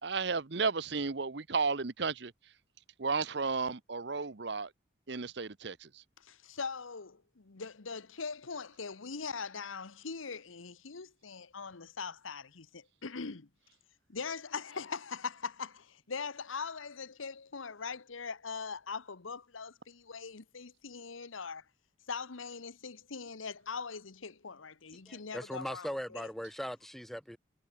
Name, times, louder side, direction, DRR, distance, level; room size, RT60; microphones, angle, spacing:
voice 1, 0.0-2.5 3.0-4.7 5.1-6.0, right 4 dB, 60° right, 0.9 m, -33 dB
voice 2, 6.2-13.5 14.1-21.6 22.1-26.3, left 5 dB, 85° left, 1.1 m, -41 dB
voice 3, 25.1-27.4, equal, ahead, 1.2 m, -39 dB
head